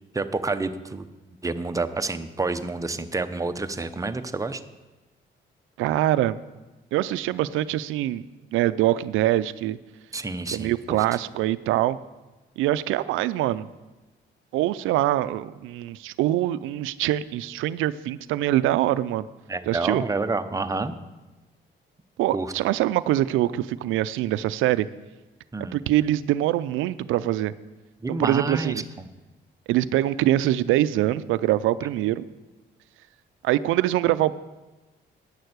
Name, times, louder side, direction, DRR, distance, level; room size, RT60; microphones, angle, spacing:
voice 1, 0.1-1.1 1.4-4.6 10.1-11.1 19.5-20.9 22.3-22.5 25.5-25.8 28.0-29.1, right 3 dB, 15° right, 9 dB, 0.7 m, -29 dB
voice 2, 5.8-6.4 6.9-8.2 8.5-9.8 10.5-12.0 12.6-13.7 14.5-19.3 19.7-20.0 22.2-24.9 25.7-27.5 28.1-28.8 29.7-32.3 33.4-34.4, right 14 dB, 90° right, 15 dB, 0.4 m, -24 dB
9.6 x 6.6 x 8.0 m, 1.1 s
cardioid pair, 90°, 20 cm